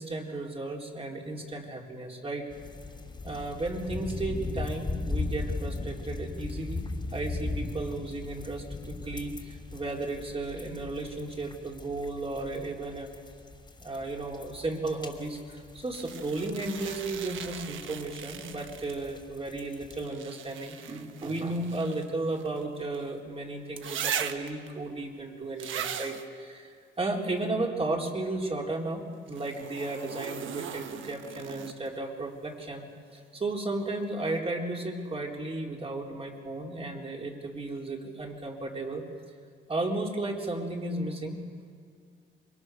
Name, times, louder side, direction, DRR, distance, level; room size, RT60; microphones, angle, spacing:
voice 1, 0.0-2.5 3.2-13.1 13.8-39.1 39.7-41.4, right 2 dB, 30° right, 0 dB, 4.2 m, -34 dB
sound 1, 2.5-20.0, left 3 dB, 20° left, 3.1 m, -38 dB
sound 2, 15.9-19.2 19.9-23.1 23.8-24.7 25.6-26.3 29.3-32.0 33.9-34.0, right 9 dB, 70° right, 1.3 m, -39 dB
26.5 x 22.0 x 6.5 m, 2.1 s
cardioid pair, 80°, 21 cm